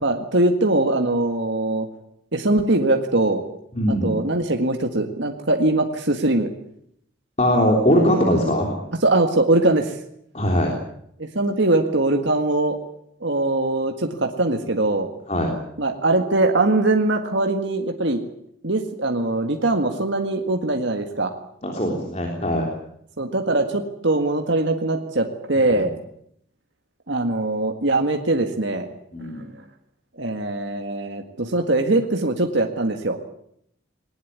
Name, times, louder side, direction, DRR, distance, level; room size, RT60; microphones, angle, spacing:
voice 1, 0.0-1.9 2.3-3.4 3.9-6.5 7.9-8.0 9.0-10.0 11.2-12.8 13.2-15.1 15.8-18.2 18.6-21.3 23.2-25.9 27.1-28.9 30.2-33.2, right 2 dB, 60° right, 4 dB, 1.9 m, -21 dB
voice 2, 3.8-4.1 7.4-8.8 10.3-10.7 15.3-15.5 21.6-22.7 29.1-29.5, equal, 30° left, 1 dB, 3.5 m, -21 dB
20.5 x 19.5 x 9.5 m, 0.72 s
head